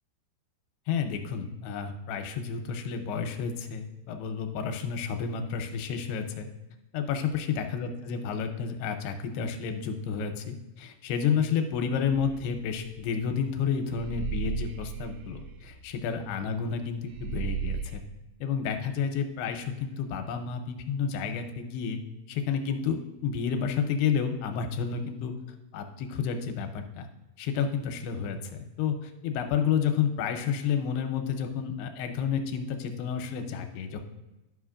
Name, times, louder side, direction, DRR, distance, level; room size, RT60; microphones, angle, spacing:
voice 1, 0.9-6.5 6.9-18.0 18.4-22.0 22.3-25.3 25.7-27.1 27.4-34.0, left 7 dB, 90° left, 6 dB, 2.7 m, -30 dB
sound 1, 12.1-13.5 13.9-16.8 17.1-18.0, right 8 dB, 90° right, 1.9 m, -35 dB
11.5 x 5.7 x 2.4 m, 1.0 s
omnidirectional pair, 4.7 m